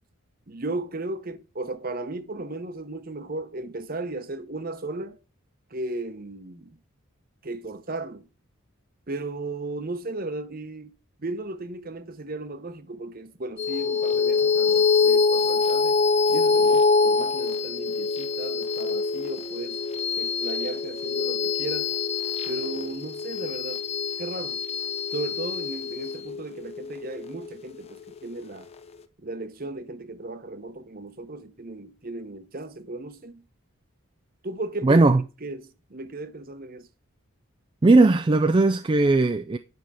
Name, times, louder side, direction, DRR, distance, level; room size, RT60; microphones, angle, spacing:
voice 1, 0.5-5.2 5.7-6.8 7.4-8.2 9.1-10.9 11.2-16.0 16.3-19.8 20.1-21.9 22.5-23.8 24.2-24.6 25.1-28.7 29.2-33.4 34.4-35.0 35.4-36.9, right 2 dB, 40° right, 0.9 m, -35 dB
sound 1, 13.6-28.3, left 4 dB, 30° left, 0.6 m, -25 dB
voice 2, 34.8-35.2 37.8-39.6, right 2 dB, 25° right, 0.3 m, -18 dB
9.5 x 5.8 x 4.8 m
head